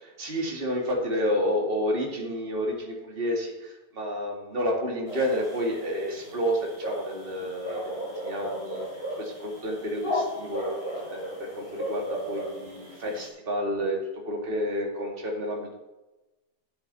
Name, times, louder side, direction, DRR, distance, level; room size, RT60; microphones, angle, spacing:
voice 1, 0.0-8.8 9.2-10.7 11.1-14.0 14.3-15.7, equal, 35° right, -1 dB, 2.5 m, -30 dB
sound 1, 5.1-13.3, equal, 60° left, 4.8 m, -35 dB
12.0 x 8.8 x 4.1 m, 1.1 s
omnidirectional pair, 1.8 m